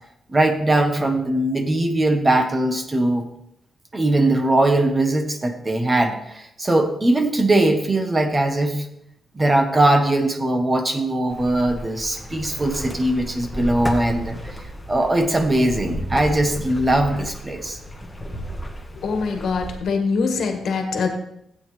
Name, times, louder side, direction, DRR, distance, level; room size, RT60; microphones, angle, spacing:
voice 1, 0.3-3.2 3.9-8.9 9.3-14.6 14.9-17.8, right 1 dB, 20° right, 6 dB, 1.1 m, -20 dB
sound 1, 11.3-19.8, equal, 10° left, 1.4 m, -33 dB
voice 2, 19.0-21.1, left 4 dB, 70° left, 4 dB, 1.5 m, -23 dB
15.5 x 8.7 x 3.3 m, 0.78 s
wide cardioid pair, 135°, 0 cm